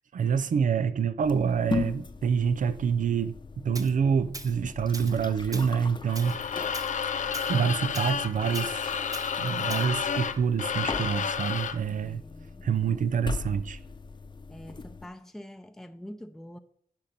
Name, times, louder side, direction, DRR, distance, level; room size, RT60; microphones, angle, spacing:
voice 1, 0.1-3.3 3.6-6.4 7.3-8.8 9.4-12.2 12.6-13.8, right 6 dB, 70° right, 0.6 m, -27 dB
sound 1, 1.2-15.1, left 4 dB, 35° left, 0.8 m, -39 dB
Tools, 3.7-3.9 4.3-4.6 4.9-5.2 5.5-5.7 6.2-6.4 6.7-6.9 7.3-7.5 7.9-8.1 8.5-8.7 9.1-9.3 9.7-9.9, right 2 dB, 25° right, 0.8 m, -41 dB
sound 2, 6.1-11.9, left 7 dB, 65° left, 0.6 m, -31 dB
voice 2, 11.9-13.0 14.5-16.6, equal, 5° left, 0.6 m, -45 dB
8.9 x 5.3 x 6.0 m
cardioid pair, 65°, 14 cm